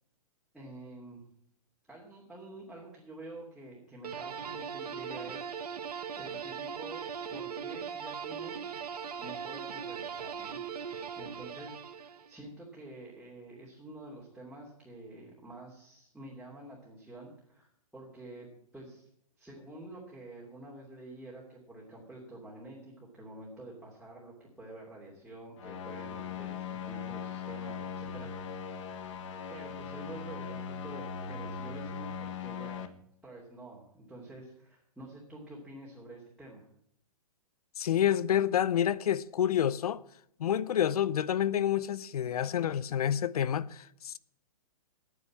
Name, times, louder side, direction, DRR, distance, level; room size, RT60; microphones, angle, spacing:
voice 1, 0.5-1.2 1.9-5.5 6.2-7.0 7.3-8.8 9.2-19.1 19.4-28.8 29.5-32.8 33.2-36.7, right 2 dB, ahead, 2.9 m, -48 dB
sound 1, 4.0-12.4, right 7 dB, 85° right, 1.5 m, -39 dB
sound 2, 25.6-32.9, left 6 dB, 50° left, 1.5 m, -39 dB
voice 2, 37.8-40.0 40.4-44.2, left 10 dB, 75° left, 0.7 m, -28 dB
10.5 x 9.6 x 7.5 m
hypercardioid pair, 145°, 19 cm